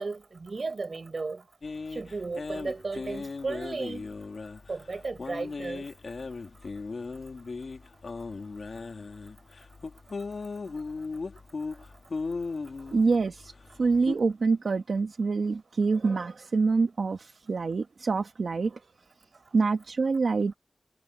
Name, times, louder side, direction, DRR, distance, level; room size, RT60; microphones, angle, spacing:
voice 1, 0.0-1.4 1.9-4.1 4.7-5.9, right 3 dB, 65° right, 4.7 m, -34 dB
sound 1, 1.6-14.2, left 4 dB, 75° left, 3.0 m, -38 dB
voice 2, 12.9-13.5 13.8-18.8 19.5-20.5, right 4 dB, 90° right, 1.3 m, -26 dB
wide cardioid pair, 60°, 0 cm